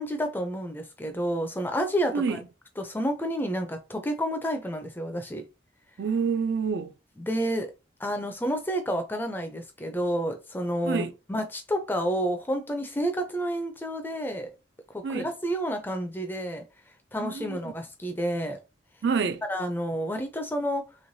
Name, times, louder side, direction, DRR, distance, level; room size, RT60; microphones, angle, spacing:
voice 1, 0.0-2.4 2.8-5.5 7.2-7.7 8.0-14.5 14.9-16.6 17.1-18.6 19.5-20.8, equal, 10° left, 0.4 m, -30 dB
voice 2, 6.0-6.9 10.8-11.1 15.0-15.3 17.2-17.6 19.0-19.4, right 5 dB, 60° right, 0.3 m, -27 dB
3.2 x 2.9 x 2.6 m
head